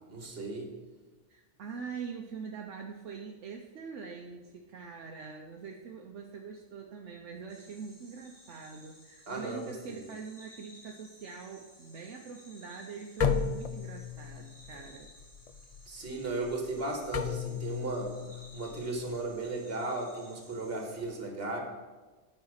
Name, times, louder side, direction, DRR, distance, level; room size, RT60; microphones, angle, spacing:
voice 1, 0.1-0.7 9.3-10.0 15.9-18.2 18.5-21.6, right 2 dB, 55° right, 2 dB, 2.0 m, -36 dB
voice 2, 1.3-15.1, right 5 dB, 75° right, 2 dB, 1.1 m, -44 dB
sound 1, 7.5-21.0, left 1 dB, 30° left, 2.8 m, -57 dB
sound 2, 13.2-19.5, left 6 dB, 75° left, 0.3 m, -35 dB
9.8 x 5.6 x 6.5 m, 1.3 s
omnidirectional pair, 1.2 m